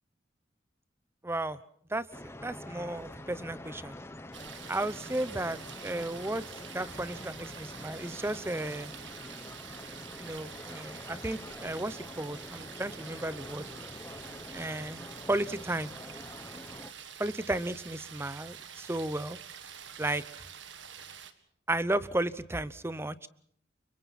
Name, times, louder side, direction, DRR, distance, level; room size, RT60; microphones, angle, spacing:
voice 1, 1.2-1.6 1.9-4.0 4.7-6.4 6.7-8.9 10.2-13.6 14.5-15.9 17.2-19.4 20.0-20.2 21.7-23.3, right 1 dB, 15° right, 16 dB, 0.8 m, -34 dB
sound 1, 2.1-16.9, left 1 dB, 15° left, 1.1 m, -46 dB
sound 2, 4.3-21.3, right 8 dB, 75° right, 1.9 m, -47 dB
29.5 x 24.5 x 4.3 m, 0.65 s
head